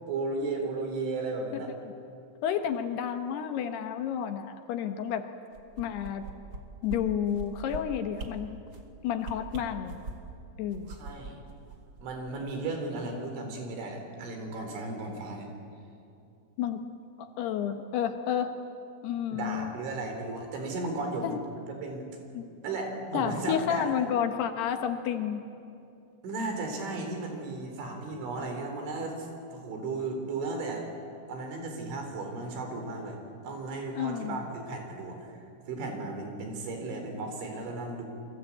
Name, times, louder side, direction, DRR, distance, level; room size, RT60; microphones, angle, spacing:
voice 1, 0.1-1.7 11.0-11.4 12.0-15.5 19.3-21.4 21.8-22.0 22.6-24.1 26.2-30.9 31.3-33.2 33.4-35.2 35.7-38.0, right 3 dB, 80° right, 4 dB, 6.3 m, -35 dB
voice 2, 2.4-5.3 5.8-6.3 6.8-8.6 9.0-10.0 10.6-10.9 16.6-16.8 17.2-18.5 19.0-19.7 21.2-21.4 22.3-22.5 23.1-25.4 33.9-34.4, left 9 dB, 70° left, 7 dB, 2.9 m, -31 dB
sound 1, 5.5-6.6 6.9-7.0 7.3-7.8 8.1-8.3 8.7-8.9 9.2-10.3 10.7-12.3 12.6-12.7, right 3 dB, 60° right, 1.2 m, -40 dB
28.5 x 24.0 x 8.6 m, 2.6 s
omnidirectional pair, 5.4 m